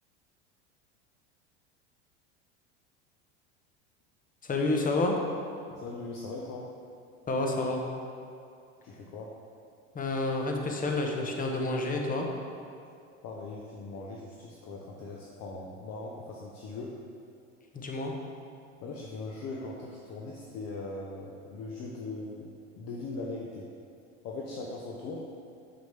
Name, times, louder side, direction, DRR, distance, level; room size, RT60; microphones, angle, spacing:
voice 1, 4.5-5.2 7.3-7.8 9.9-12.3 17.7-18.1, left 2 dB, 20° left, 2 dB, 1.0 m, -29 dB
voice 2, 5.7-6.7 8.8-9.3 13.2-17.0 18.8-23.7 24.2-25.3, left 3 dB, 45° left, -2 dB, 0.9 m, -40 dB
7.2 x 6.2 x 3.4 m, 2.4 s
hypercardioid pair, 85°, 36 cm